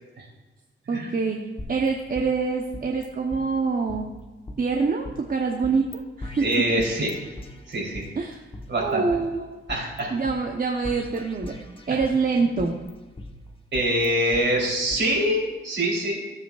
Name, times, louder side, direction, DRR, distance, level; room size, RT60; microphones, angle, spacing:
voice 1, 0.9-1.4 1.7-4.1 4.6-6.7 8.1-8.4 8.7-9.6 10.1-11.5 11.9-12.7, right 4 dB, 45° right, 1 dB, 0.9 m, -25 dB
sound 1, 1.6-3.1 3.3-3.4 3.9-5.2 5.6-6.0 6.2-8.1 8.5-10.0 10.3-10.4 10.8-12.2 12.6-14.4 14.9-15.0, left 1 dB, 25° left, 1.1 m, -40 dB
voice 2, 6.4-7.1 7.7-8.1 8.7-9.0 9.7-10.1 11.9-12.0 13.7-16.2, right 1 dB, 60° right, -3 dB, 3.5 m, -24 dB
15.5 x 7.9 x 2.4 m, 1.2 s
wide cardioid pair, 105°, 21 cm